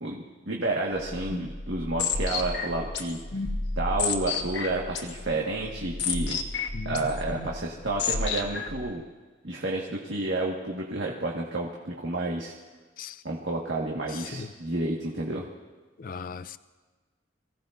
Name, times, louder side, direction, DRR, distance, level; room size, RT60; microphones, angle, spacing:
voice 1, 0.0-3.2 3.8-6.4 6.8-9.0 9.4-12.5 13.2-15.4, right 2 dB, 75° right, 1.7 m, -30 dB
sound 1, 1.0-8.9, left 4 dB, 70° left, 1.3 m, -32 dB
voice 2, 16.0-16.6, left 5 dB, 50° left, 0.5 m, -37 dB
25.0 x 16.5 x 2.6 m
head